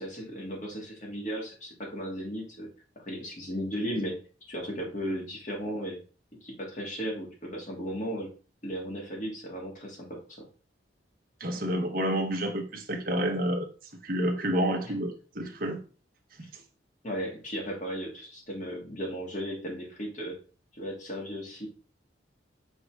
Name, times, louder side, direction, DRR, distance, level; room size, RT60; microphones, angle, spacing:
voice 1, 0.0-2.7 3.0-4.2 4.5-6.0 6.4-8.3 8.6-10.4 14.8-14.9 17.0-20.4 20.7-21.7, equal, 40° left, 2.0 m, -35 dB
voice 2, 11.4-13.7 14.0-15.8, right 1 dB, 50° right, 1.1 m, -29 dB
5.5 x 3.7 x 4.7 m
head